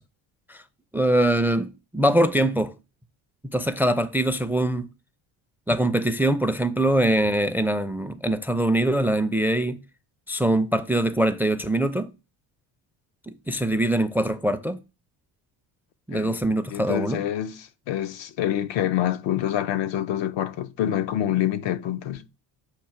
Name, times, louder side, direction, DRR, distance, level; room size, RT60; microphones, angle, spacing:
voice 1, 0.9-2.7 3.4-4.9 5.7-9.8 10.3-12.1 13.3-14.8 16.1-17.2, right 1 dB, 5° right, 0.4 m, -23 dB
voice 2, 16.7-22.2, left 11 dB, 70° left, 0.7 m, -26 dB
7.5 x 2.7 x 5.7 m
cardioid pair, 95°, 47 cm